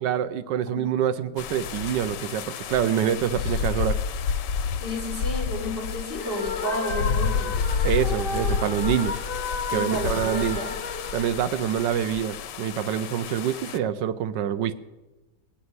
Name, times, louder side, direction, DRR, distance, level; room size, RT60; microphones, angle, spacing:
voice 1, 0.0-4.0 7.8-9.2 9.7-10.6 11.1-14.7, right 9 dB, 85° right, 13 dB, 1.3 m, -26 dB
sound 1, 1.4-13.8, left 6 dB, 80° left, 1.3 m, -30 dB
voice 2, 4.8-7.6 9.7-10.7, left 1 dB, 10° right, -1 dB, 3.1 m, -32 dB
sound 2, 6.1-12.2, left 4 dB, 40° left, 0.9 m, -33 dB
20.0 x 7.0 x 9.5 m, 1.1 s
omnidirectional pair, 1.9 m